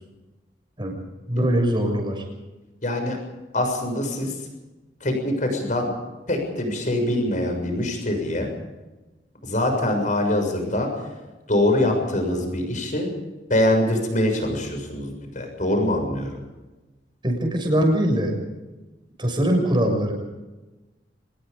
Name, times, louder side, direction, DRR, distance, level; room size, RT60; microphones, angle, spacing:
voice 1, 1.3-2.2 17.2-18.4 19.2-20.1, right 1 dB, 25° right, 2 dB, 6.6 m, -22 dB
voice 2, 2.8-3.2 3.5-4.4 5.0-5.9 6.3-8.5 9.4-11.0 11.5-13.1 13.5-16.3, left 1 dB, 45° left, 4 dB, 6.8 m, -23 dB
25.0 x 20.5 x 5.3 m, 1.1 s
head